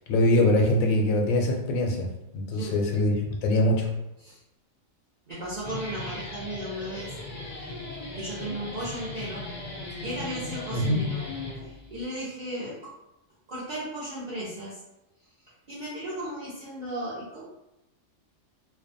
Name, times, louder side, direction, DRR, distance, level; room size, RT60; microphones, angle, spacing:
voice 1, 0.1-2.1 2.3-3.9 10.7-11.0, left 1 dB, 80° left, 0 dB, 1.0 m, -23 dB
voice 2, 5.3-7.2 8.1-9.5 10.0-11.3 11.5-12.9 13.5-14.8 15.7-17.5, right 1 dB, 50° right, -9 dB, 0.6 m, -35 dB
Guitar, 5.4-12.0, left 2 dB, 60° left, 0.4 m, -37 dB
2.4 x 2.2 x 2.6 m, 0.91 s
omnidirectional pair, 1.4 m